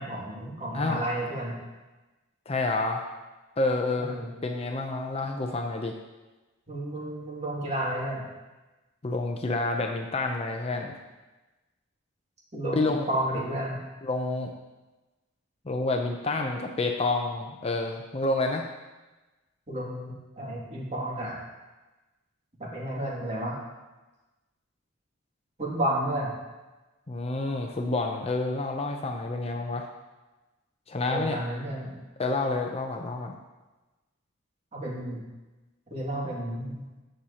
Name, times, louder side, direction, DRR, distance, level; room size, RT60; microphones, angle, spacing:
voice 1, 0.0-1.6 4.0-4.3 6.7-8.2 12.5-13.8 19.7-21.4 22.6-23.6 25.6-26.4 31.1-32.0 34.7-35.2 35.9-36.9, right 1 dB, 35° right, -4 dB, 2.3 m, -32 dB
voice 2, 0.7-1.0 2.5-3.0 3.6-4.2 4.4-5.9 9.0-10.9 12.7-13.0 14.0-14.5 15.7-18.7 27.1-29.9 30.9-31.4 32.2-33.3, left 2 dB, 30° left, 3 dB, 0.6 m, -28 dB
14.5 x 6.4 x 2.9 m, 1.1 s
head